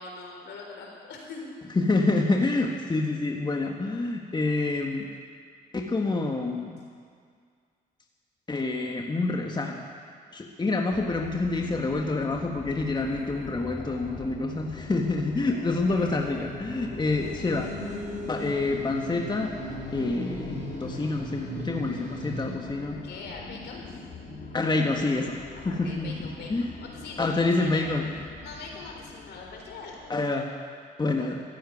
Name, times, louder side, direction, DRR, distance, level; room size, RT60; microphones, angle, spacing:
voice 1, 0.0-1.5 23.0-23.9 25.6-27.9 28.4-30.1, left 3 dB, 70° left, 0 dB, 4.0 m, -42 dB
voice 2, 1.7-5.1 5.7-6.8 8.5-9.8 10.3-17.7 18.3-19.5 19.9-23.0 24.5-25.4 25.6-26.7 27.2-28.1 30.1-30.5 31.0-31.4, left 3 dB, 25° left, 2 dB, 1.5 m, -27 dB
sound 1, 10.9-30.1, left 3 dB, 45° left, 2.1 m, -42 dB
sound 2, 17.2-22.6, equal, 40° right, 4.5 m, -38 dB
14.5 x 10.0 x 9.5 m, 2.1 s
supercardioid pair, 75°, 19 cm